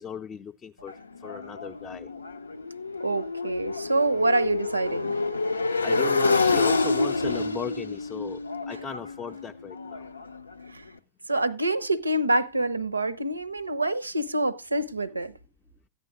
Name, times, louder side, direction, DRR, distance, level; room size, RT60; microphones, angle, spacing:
voice 1, 0.0-2.1 5.8-8.4 8.7-10.0, left 7 dB, 25° left, 0.5 m, -37 dB
Motorcycle, 0.9-10.7, left 3 dB, 80° left, 0.5 m, -28 dB
voice 2, 3.0-5.1 10.7-10.8 11.3-15.3, right 2 dB, 80° right, 0.6 m, -26 dB
14.0 x 9.4 x 2.5 m
figure-of-eight pair, 90°, 0 cm